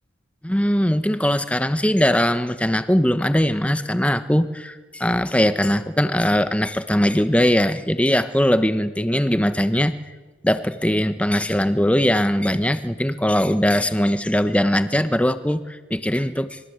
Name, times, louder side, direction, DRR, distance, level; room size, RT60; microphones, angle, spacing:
voice 1, 0.4-9.9 10.4-16.6, equal, 5° left, 11 dB, 1.1 m, -20 dB
26.5 x 23.0 x 8.2 m, 1.3 s
head